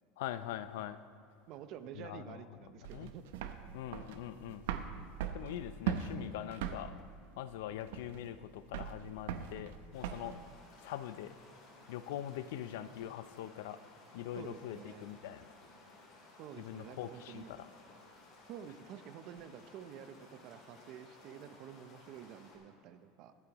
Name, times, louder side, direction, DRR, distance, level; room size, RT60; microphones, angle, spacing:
voice 1, 0.2-1.0 2.0-2.4 2.9-3.1 3.7-4.6 5.3-7.0 7.4-10.4 10.8-11.3 11.9-13.9 14.1-15.5 16.6-17.7, left 11 dB, 85° left, 13 dB, 0.5 m, -43 dB
voice 2, 1.5-3.2 14.4-15.1 16.4-17.5 18.5-23.3, right 9 dB, 50° right, 11 dB, 0.7 m, -49 dB
sound 1, 2.8-10.3, right 8 dB, 90° right, 0.7 m, -40 dB
sound 2, 9.9-22.6, left 2 dB, 50° left, 3.5 m, -58 dB
23.5 x 8.3 x 3.0 m, 2.4 s
supercardioid pair, 150°, 0 cm